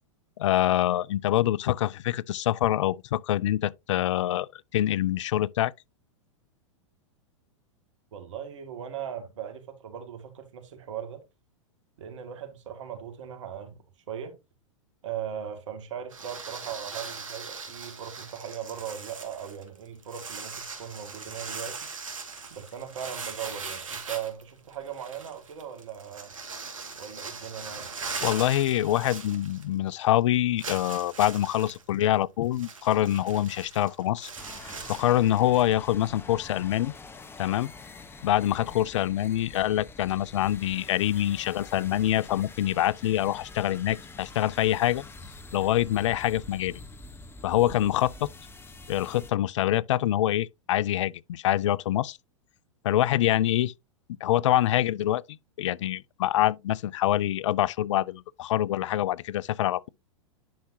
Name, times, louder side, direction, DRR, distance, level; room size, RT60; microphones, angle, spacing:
voice 1, 0.4-5.7 28.2-34.3 34.6-36.9 37.4-37.7 38.2-45.0 45.5-46.8 47.4-48.3 48.9-52.2 52.8-53.7 54.2-55.2 55.6-59.9, left 13 dB, 65° left, 0.4 m, -25 dB
voice 2, 8.1-11.2 12.0-13.8 14.1-14.4 15.0-21.9 22.5-26.3 26.9-27.9, right 9 dB, 70° right, 2.3 m, -38 dB
sound 1, 16.1-29.9 30.2-30.3 30.6-35.7, right 5 dB, 85° right, 2.2 m, -40 dB
sound 2, 34.4-49.3, left 3 dB, 15° left, 1.1 m, -46 dB
10.5 x 5.7 x 2.8 m
hypercardioid pair, 105°, 17 cm